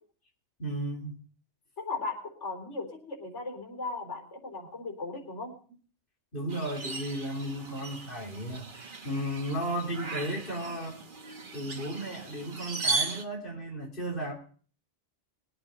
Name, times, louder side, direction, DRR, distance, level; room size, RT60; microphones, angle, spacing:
voice 1, 0.6-1.2 6.3-11.0 11.5-14.3, right 1 dB, 50° left, -3 dB, 3.3 m, -34 dB
voice 2, 1.8-5.5, left 3 dB, 80° left, 2 dB, 4.4 m, -37 dB
sound 1, 6.5-13.2, right 3 dB, 45° right, 1.3 m, -37 dB
22.0 x 8.9 x 4.1 m, 0.43 s
omnidirectional pair, 1.2 m